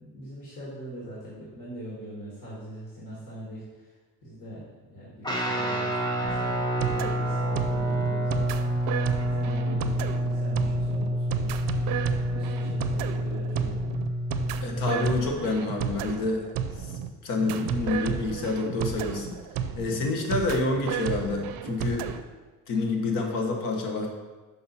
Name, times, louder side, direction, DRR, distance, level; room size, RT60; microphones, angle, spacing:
voice 1, 0.0-9.0 9.2-11.6 12.1-13.8, right 1 dB, 45° left, -7 dB, 1.7 m, -42 dB
Guitar, 5.2-15.1, equal, 10° left, 0.7 m, -28 dB
sound 1, 6.2-22.2, right 8 dB, 75° right, 0.5 m, -33 dB
voice 2, 14.6-16.4 16.8-16.9 17.2-19.4 19.7-22.1 22.7-24.1, left 3 dB, 70° left, 2 dB, 1.2 m, -28 dB
5.6 x 5.5 x 4.1 m, 1.3 s
cardioid pair, 160°, 34 cm